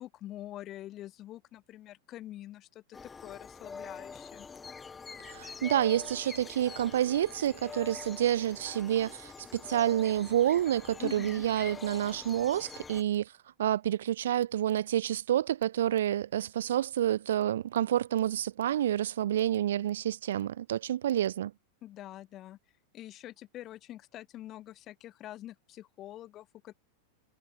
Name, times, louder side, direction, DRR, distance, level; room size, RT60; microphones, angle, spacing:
voice 1, 0.0-4.5 11.0-11.4 21.8-22.6 22.9-26.7, left 14 dB, 35° left, 2.2 m, -45 dB
sound 1, 2.9-13.0, left 5 dB, 15° left, 1.8 m, -45 dB
voice 2, 5.2-13.3 13.6-21.5, right 11 dB, 60° right, 0.5 m, -29 dB
figure-of-eight pair, 90°, 0 cm